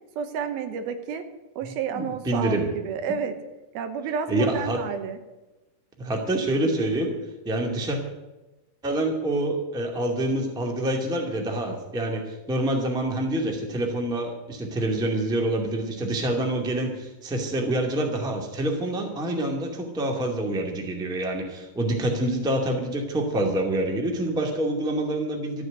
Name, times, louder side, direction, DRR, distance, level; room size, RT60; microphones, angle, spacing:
voice 1, 0.2-1.3 1.6-2.6 2.8-3.4 3.7-5.2, right 6 dB, 80° right, 8 dB, 3.0 m, -30 dB
voice 2, 1.9-2.7 4.3-4.8 6.0-7.2 7.4-8.0 8.8-25.6, right 1 dB, ahead, 1 dB, 1.1 m, -26 dB
13.5 x 7.9 x 9.4 m, 1.1 s
omnidirectional pair, 4.3 m